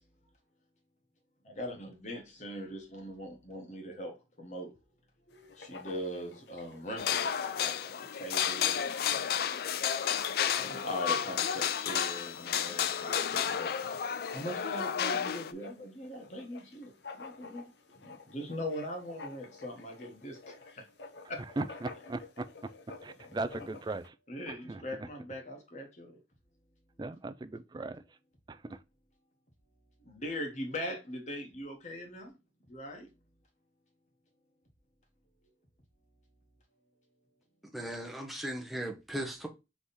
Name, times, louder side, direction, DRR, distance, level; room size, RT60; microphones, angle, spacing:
voice 1, 1.4-4.7 5.3-9.4 10.5-13.7 14.3-20.9 21.3-21.4 24.3-26.2 30.0-32.4 32.7-33.1, equal, 40° left, 1.2 m, -41 dB
Writing, 5.3-24.1, left 4 dB, 75° left, 0.8 m, -51 dB
sound 1, 7.0-15.5, left 8 dB, 55° left, 0.3 m, -32 dB
voice 2, 21.6-22.4 23.0-24.1 24.5-24.8 27.0-28.0 28.5-28.8, right 2 dB, 25° right, 0.3 m, -38 dB
voice 3, 37.6-39.5, right 1 dB, ahead, 0.7 m, -38 dB
3.6 x 3.2 x 4.0 m
head